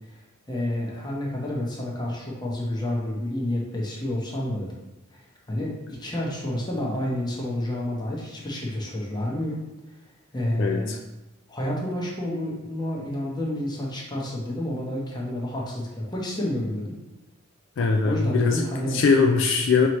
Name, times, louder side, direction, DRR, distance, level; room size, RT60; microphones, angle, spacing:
voice 1, 0.5-4.7 5.1-9.6 10.3-11.0 11.5-17.0 18.0-19.0, left 1 dB, 20° left, -3 dB, 0.8 m, -29 dB
voice 2, 10.6-11.0 17.8-19.9, left 4 dB, 60° left, 2 dB, 0.3 m, -21 dB
4.7 x 3.0 x 3.0 m, 1.0 s
head